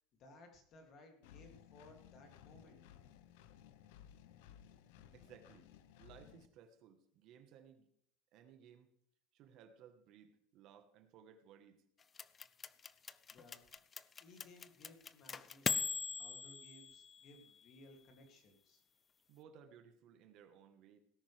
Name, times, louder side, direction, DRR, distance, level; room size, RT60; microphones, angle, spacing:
voice 1, 0.2-2.8 13.3-13.6 14.2-15.9 16.2-18.8, left 2 dB, 35° left, 3 dB, 2.5 m, -60 dB
Engine, 1.2-6.5, left 10 dB, 70° left, 0.8 m, -59 dB
voice 2, 5.1-5.7 6.0-7.9 8.3-8.9 9.3-11.8 19.3-21.0, right 8 dB, 40° right, 8 dB, 1.2 m, -60 dB
sound 1, 12.2-17.5, left 5 dB, 15° left, 0.4 m, -41 dB
17.5 x 10.0 x 3.4 m, 0.66 s
cardioid pair, 180°, 0 cm